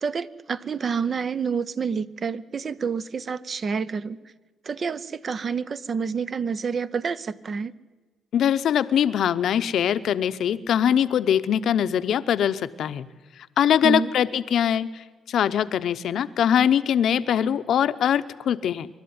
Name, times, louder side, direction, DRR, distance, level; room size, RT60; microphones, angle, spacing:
voice 1, 0.0-4.2 4.6-7.7 13.8-14.1, right 5 dB, 45° right, 16 dB, 0.8 m, -28 dB
voice 2, 8.3-13.0 13.6-14.9 15.3-18.9, left 9 dB, 70° left, 13 dB, 0.8 m, -22 dB
24.5 x 12.0 x 9.5 m, 1.3 s
cardioid pair, 90°, 0 cm